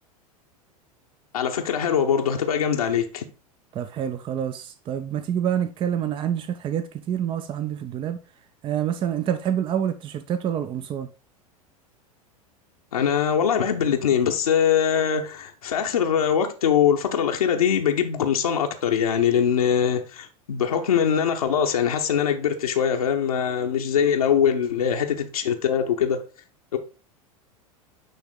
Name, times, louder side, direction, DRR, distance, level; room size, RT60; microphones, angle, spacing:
voice 1, 1.3-3.2 12.9-26.2 26.7-26.8, left 8 dB, 70° left, 0.9 m, -22 dB
voice 2, 3.7-8.2 8.6-11.1, right 9 dB, 25° right, 0.6 m, -27 dB
9.2 x 3.5 x 3.7 m
figure-of-eight pair, 85°, 19 cm